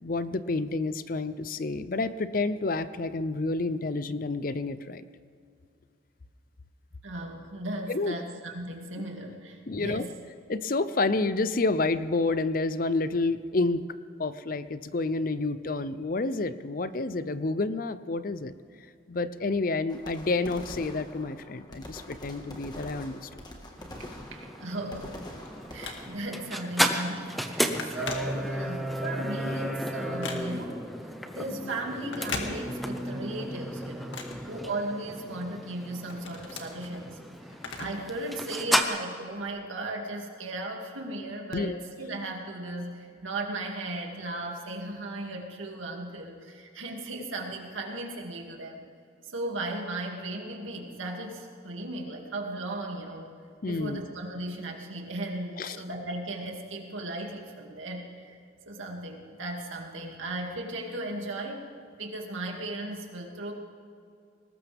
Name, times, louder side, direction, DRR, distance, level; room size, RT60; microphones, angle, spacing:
voice 1, 0.0-5.0 7.9-8.2 9.7-10.0 10.5-13.8 14.2-18.5 19.1-23.3 41.5-41.8 53.6-54.0 55.6-55.8, left 3 dB, 45° left, 13 dB, 0.6 m, -29 dB
voice 2, 7.0-10.1 24.0-25.2 25.7-30.8 31.3-37.2 37.8-48.8 49.2-53.3 53.7-58.4 58.7-61.6 62.0-63.5, right 2 dB, 90° right, 1 dB, 2.4 m, -36 dB
sound 1, 19.9-26.1, left 1 dB, 20° left, 1.6 m, -44 dB
sound 2, 23.8-38.8, equal, ahead, 0.8 m, -33 dB
Telephone, 25.0-26.4 26.9-27.1 27.4-28.9 29.3-30.8 32.0-33.1 33.4-35.2 35.6-38.1 38.4-38.5 39.4-39.5, left 4 dB, 75° left, 2.0 m, -40 dB
21.5 x 19.0 x 3.5 m, 2.4 s
head